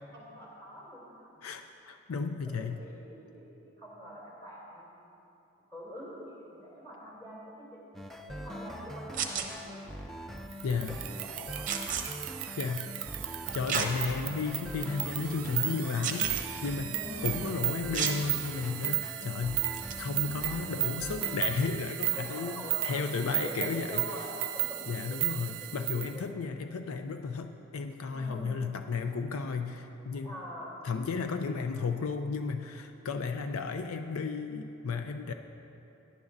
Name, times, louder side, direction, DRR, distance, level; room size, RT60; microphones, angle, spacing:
voice 1, 0.1-1.3 2.4-4.9 5.7-7.8 8.1-9.9 11.2-11.7 16.9-17.5 22.0-25.7 26.1-26.3 28.1-28.6 30.2-30.8, equal, 20° left, -6 dB, 2.9 m, -45 dB
voice 2, 1.4-2.8 10.6-11.0 12.6-12.9 13.5-17.0 17.2-19.6 20.0-24.0 24.9-30.3 30.8-35.3, left 5 dB, 80° left, 6 dB, 0.5 m, -33 dB
sound 1, 7.9-21.7, equal, ahead, 0.4 m, -43 dB
sound 2, 9.1-9.5 11.7-12.0 13.7-13.9 14.5-14.6 16.0-16.4 17.9-18.2 19.7-19.9, right 7 dB, 35° right, 0.8 m, -31 dB
sound 3, 10.5-26.2, right 16 dB, 90° right, 0.5 m, -35 dB
18.0 x 11.0 x 2.6 m, 2.9 s
head